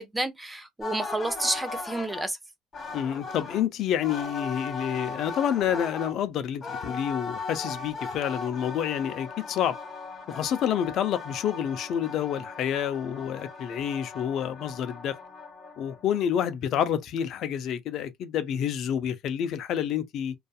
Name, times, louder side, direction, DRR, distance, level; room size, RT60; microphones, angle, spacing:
voice 1, 0.0-2.4, right 2 dB, 10° right, 0.6 m, -30 dB
sound 1, 0.8-2.3 2.7-3.6 4.0-6.1 6.6-16.4, left 4 dB, 35° left, 1.5 m, -38 dB
voice 2, 2.9-9.8 10.3-15.2 15.8-20.3, left 9 dB, 60° left, 0.5 m, -28 dB
2.6 x 2.3 x 2.3 m
supercardioid pair, 95°, 0 cm